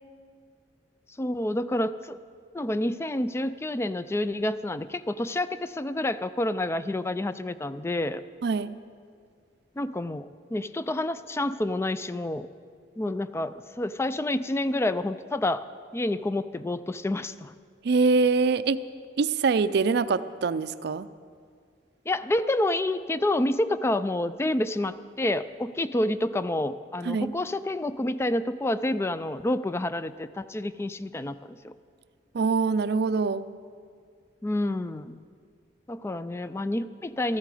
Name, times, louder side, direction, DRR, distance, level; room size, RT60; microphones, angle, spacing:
voice 1, 1.2-2.2 2.5-8.2 9.8-10.3 10.5-12.5 13.0-15.6 15.9-17.5 22.1-31.7 34.4-35.2 35.9-37.4, left 1 dB, 15° left, 13 dB, 0.3 m, -28 dB
voice 2, 8.4-8.7 17.8-18.8 19.2-21.1 27.1-27.3 32.3-33.4, right 4 dB, 65° right, 14 dB, 0.4 m, -24 dB
13.5 x 13.0 x 4.9 m, 2.1 s
head